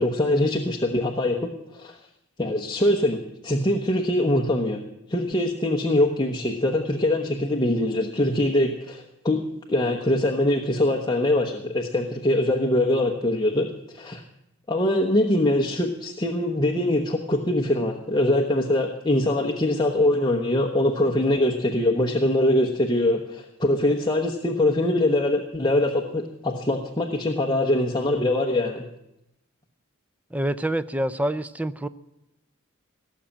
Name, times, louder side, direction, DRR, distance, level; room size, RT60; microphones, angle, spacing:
voice 1, 0.0-2.0 2.4-4.8 5.1-9.4 9.7-14.2 14.7-28.8, left 1 dB, 20° left, 1.1 m, -23 dB
voice 2, 30.3-31.9, right 1 dB, 5° right, 0.5 m, -26 dB
18.0 x 7.2 x 8.8 m
head